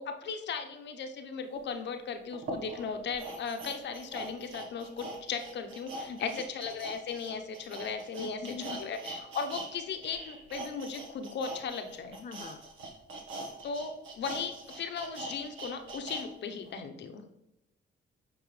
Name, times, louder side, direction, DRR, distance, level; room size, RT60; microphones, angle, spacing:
voice 1, 0.0-12.2 13.6-17.2, left 5 dB, 60° left, 7 dB, 0.8 m, -37 dB
sound 1, 1.6-1.7 2.3-9.7 10.0-16.3 16.6-16.7, right 2 dB, 85° right, 1.3 m, -42 dB
voice 2, 6.1-6.4 8.2-8.8 12.1-12.6, left 5 dB, 40° left, 6 dB, 0.4 m, -42 dB
8.8 x 4.6 x 3.2 m, 0.86 s
cardioid pair, 90°, 20 cm